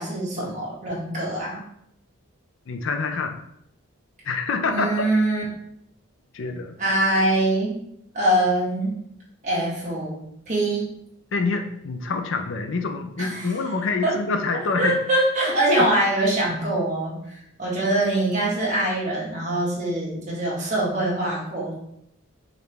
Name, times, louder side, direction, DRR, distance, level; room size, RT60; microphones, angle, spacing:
voice 1, 0.0-1.6 4.7-5.4 6.8-7.8 8.1-9.0 9.4-10.2 10.5-10.9 13.2-13.5 14.0-14.1 14.8-21.7, right 1 dB, 35° right, -6 dB, 1.5 m, -23 dB
voice 2, 2.7-3.4 4.2-4.9 6.3-6.8 11.3-15.0, left 4 dB, 65° left, 6 dB, 0.5 m, -26 dB
4.9 x 3.2 x 3.3 m, 0.74 s
head